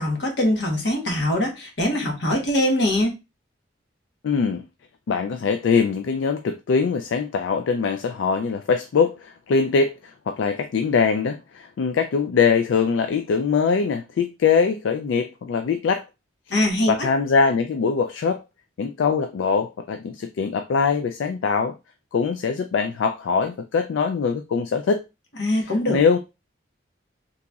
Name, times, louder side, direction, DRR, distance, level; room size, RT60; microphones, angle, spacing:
voice 1, 0.0-3.1 16.5-16.9 25.4-26.0, left 1 dB, 65° left, 1.1 m, -22 dB
voice 2, 4.2-4.6 5.1-16.0 16.9-18.4 18.8-21.8 22.1-25.0 25.5-26.2, left 5 dB, 80° left, 0.3 m, -22 dB
3.9 x 2.9 x 2.3 m
head